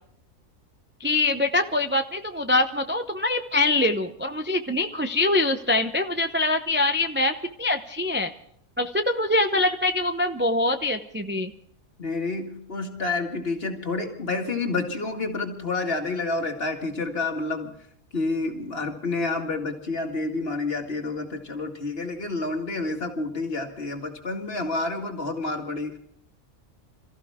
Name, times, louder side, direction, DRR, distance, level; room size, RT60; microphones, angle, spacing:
voice 1, 1.0-8.3 8.8-11.5, left 2 dB, 15° right, 6 dB, 0.5 m, -24 dB
voice 2, 12.0-17.7 18.1-25.9, left 3 dB, 45° left, 3 dB, 2.3 m, -29 dB
27.5 x 14.5 x 3.6 m, 0.68 s
omnidirectional pair, 1.4 m